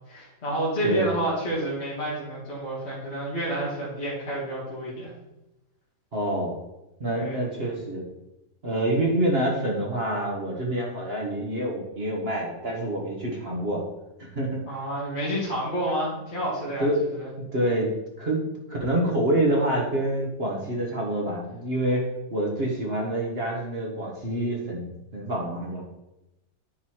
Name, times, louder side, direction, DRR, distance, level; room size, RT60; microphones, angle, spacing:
voice 1, 0.1-5.1 7.1-7.4 14.7-17.3, right 1 dB, 35° left, -8 dB, 2.3 m, -29 dB
voice 2, 6.1-6.6 7.0-8.0 8.6-13.8 14.2-14.6 16.8-17.1 17.4-17.9 18.2-22.0 22.3-24.9 25.1-25.8, right 1 dB, 35° right, -1 dB, 1.6 m, -27 dB
10.0 x 4.2 x 4.7 m, 0.93 s
omnidirectional pair, 2.0 m